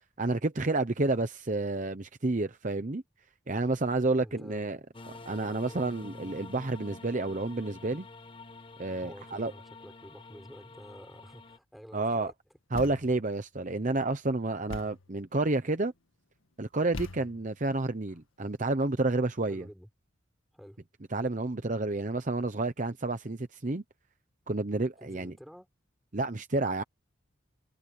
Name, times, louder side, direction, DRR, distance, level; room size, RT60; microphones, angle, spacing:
voice 1, 0.2-3.0 3.5-4.8 5.1-8.1 8.8-9.5 11.9-12.3 12.7-15.9 16.6-19.7 21.1-23.8 24.5-25.3 26.1-26.8, right 2 dB, 40° right, 0.8 m, -30 dB
voice 2, 4.2-4.6 5.6-5.8 9.0-12.3 19.5-19.9 20.5-20.8 25.0-25.7, equal, ahead, 6.3 m, -50 dB
sound 1, 4.9-11.6, left 3 dB, 25° left, 1.1 m, -48 dB
Thump thud, 12.7-13.3 14.7-15.1 16.9-17.6, left 2 dB, 85° left, 1.7 m, -41 dB
head